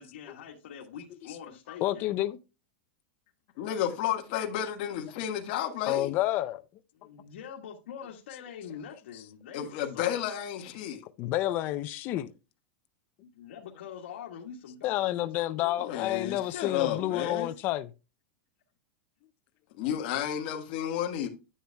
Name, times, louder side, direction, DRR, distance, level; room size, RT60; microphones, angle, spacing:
voice 1, 0.0-2.2 6.9-10.2 13.2-15.1 15.5-16.4, left 8 dB, 90° left, 1.4 m, -45 dB
voice 2, 1.7-2.4 5.9-6.6 11.2-12.3 14.8-17.9, left 15 dB, 30° left, 0.4 m, -29 dB
voice 3, 3.6-6.1 9.5-11.0 15.8-17.5 19.8-21.3, left 10 dB, 45° left, 1.4 m, -32 dB
10.0 x 7.8 x 2.2 m
supercardioid pair, 170°, 6 cm